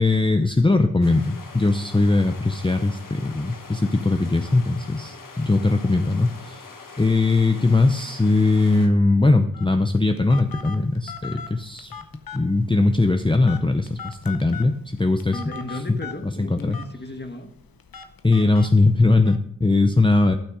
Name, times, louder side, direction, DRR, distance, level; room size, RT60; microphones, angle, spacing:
voice 1, 0.0-6.6 7.0-11.9 12.3-15.4 15.7-16.0 16.4-16.8 18.2-20.3, left 2 dB, 15° left, 6 dB, 0.6 m, -20 dB
sound 1, 1.0-8.9, left 4 dB, 70° left, 1.3 m, -43 dB
Telephone, 9.5-19.4, left 6 dB, 85° left, 0.8 m, -41 dB
voice 2, 15.3-17.5, left 2 dB, 30° left, 6 dB, 1.4 m, -34 dB
12.0 x 5.9 x 4.9 m, 0.71 s
cardioid pair, 55°, 34 cm